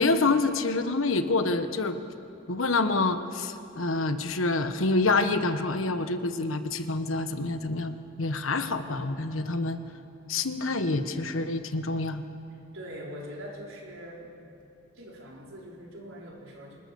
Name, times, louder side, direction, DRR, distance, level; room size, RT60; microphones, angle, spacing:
voice 1, 0.0-2.0 2.5-9.8 10.3-12.2, left 3 dB, 85° left, 9 dB, 1.3 m, -27 dB
voice 2, 12.7-14.4 14.9-16.8, equal, 85° right, -2 dB, 4.5 m, -42 dB
27.0 x 19.0 x 7.0 m, 2.7 s
head